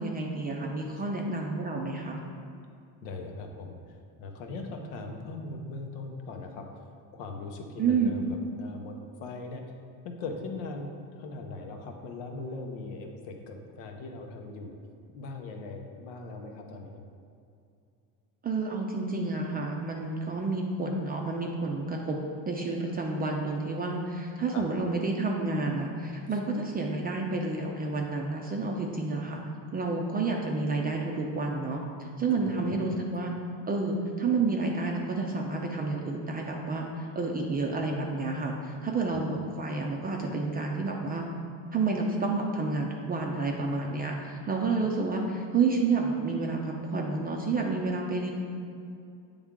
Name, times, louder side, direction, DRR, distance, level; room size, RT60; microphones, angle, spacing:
voice 1, 0.0-2.2 7.8-8.1 18.4-22.2 22.5-29.4 29.7-31.8 32.2-33.3 33.7-41.3 41.7-48.3, right 3 dB, 25° right, 0 dB, 0.4 m, -30 dB
voice 2, 3.0-3.8 4.2-6.7 7.1-9.6 10.0-14.8 15.1-17.0 24.5-24.7 32.3-32.8 39.1-39.2, left 3 dB, 90° left, 3 dB, 0.9 m, -40 dB
8.3 x 3.6 x 3.6 m, 2.5 s
cardioid pair, 130°, 42 cm